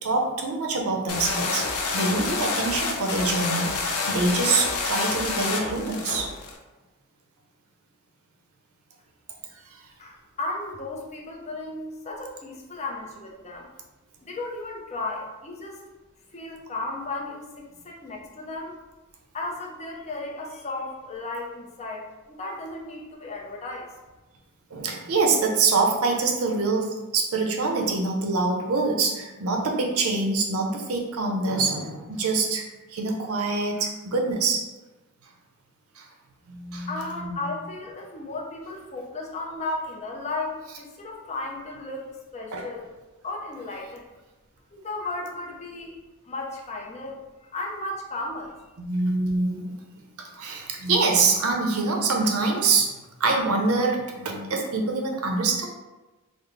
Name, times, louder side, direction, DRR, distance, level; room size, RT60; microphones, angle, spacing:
voice 1, 0.0-1.7 1.9-6.3 24.7-32.6 32.9-34.6 36.0-36.1 36.5-36.9 37.2-37.5 42.5-42.6 48.8-49.8 50.2-52.9 53.2-55.7, right 3 dB, 75° right, 1 dB, 0.6 m, -25 dB
sound 1, 1.1-6.5, left 4 dB, 75° left, 0.5 m, -28 dB
voice 2, 10.0-13.7 14.2-15.8 16.3-18.8 19.3-23.9 36.9-42.9 43.2-44.1 44.7-46.0 46.2-48.6, left 2 dB, 30° left, -1 dB, 0.5 m, -35 dB
3.8 x 2.0 x 3.2 m, 1.1 s
head